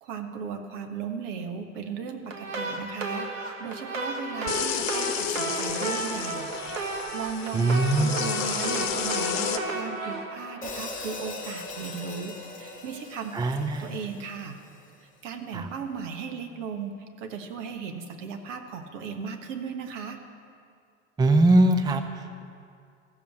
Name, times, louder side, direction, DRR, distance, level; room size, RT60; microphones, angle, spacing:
voice 1, 0.0-3.3 3.6-6.5 7.1-14.6 15.0-20.2, right 6 dB, 65° right, 6 dB, 1.3 m, -36 dB
sound 1, 2.3-11.4, right 2 dB, 80° right, 1.5 m, -33 dB
sound 2, 4.5-9.6, left 9 dB, 65° left, 1.0 m, -31 dB
voice 2, 7.5-8.3 13.3-13.9 15.5-15.7 21.2-22.4, right 2 dB, 10° right, 7 dB, 0.6 m, -22 dB
Hi-hat, 10.6-14.8, left 3 dB, 20° left, 1.8 m, -40 dB
14.5 x 7.0 x 7.8 m, 2.3 s
hypercardioid pair, 80°, 40 cm